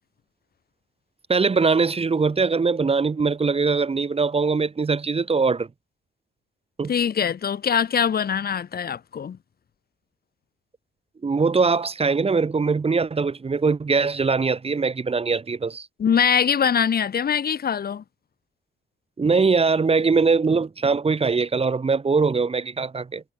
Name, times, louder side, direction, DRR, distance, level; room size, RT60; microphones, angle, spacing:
voice 1, 1.3-5.7 6.8-6.9 11.2-15.9 19.2-23.2, right 4 dB, 30° right, 2.4 m, -21 dB
voice 2, 6.9-9.4 16.0-18.0, left 7 dB, 50° left, 3.8 m, -22 dB
cardioid pair, 90°, 20 cm